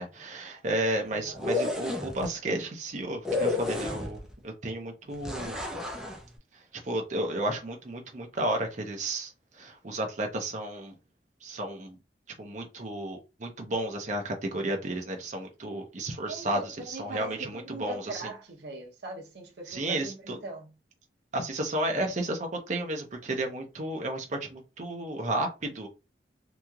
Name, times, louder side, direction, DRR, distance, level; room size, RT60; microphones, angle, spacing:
voice 1, 0.0-5.6 6.5-10.9 11.4-12.0 12.4-18.2 19.7-20.4 21.3-25.9, right 1 dB, 45° right, 0.6 m, -32 dB
voice 2, 1.1-1.4 16.3-20.7, right 2 dB, 70° right, 0.9 m, -41 dB
sound 1, 1.3-2.3 3.2-4.3 5.2-6.2, left 3 dB, 5° right, 0.6 m, -31 dB
3.0 x 2.7 x 2.3 m
head